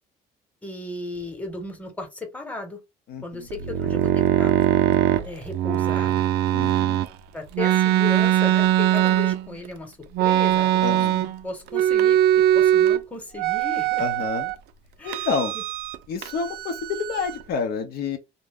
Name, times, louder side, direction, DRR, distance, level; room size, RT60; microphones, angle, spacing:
voice 1, 0.6-2.8 3.2-4.6 4.9-5.0 5.2-6.3 7.3-14.0 15.0-15.6, left 2 dB, 10° left, 1.0 m, -36 dB
voice 2, 3.1-3.5 6.5-7.0 10.8-11.2 14.0-14.5 15.0-15.5 16.1-18.2, left 5 dB, 70° left, 0.6 m, -29 dB
sound 1, 3.5-7.1 7.5-9.7 10.1-11.4 11.7-13.0 13.4-14.5 15.1-16.0 16.2-17.4, right 12 dB, 80° right, 0.4 m, -21 dB
2.6 x 2.2 x 3.4 m
cardioid pair, 110°, 17 cm